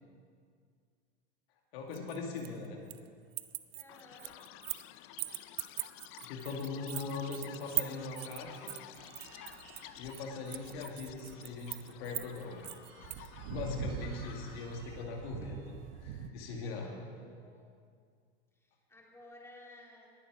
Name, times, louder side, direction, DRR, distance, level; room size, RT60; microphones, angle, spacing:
voice 1, 1.7-2.8 6.2-8.7 10.0-12.6 13.2-15.7 16.0-16.9, left 4 dB, 70° left, 1 dB, 2.1 m, -40 dB
sound 1, 1.9-3.1 3.3-4.9 5.2-13.3, right 21 dB, 45° right, 0.6 m, -40 dB
voice 2, 3.7-4.4 16.6-17.7 18.5-20.1, left 1 dB, 10° left, -2 dB, 2.4 m, -56 dB
Chirp tweet, 3.9-15.0, left 14 dB, 40° left, 0.5 m, -52 dB
sound 2, 9.0-16.3, right 9 dB, 65° right, 0.9 m, -46 dB
19.5 x 7.3 x 4.9 m, 2.1 s
hypercardioid pair, 110°, 32 cm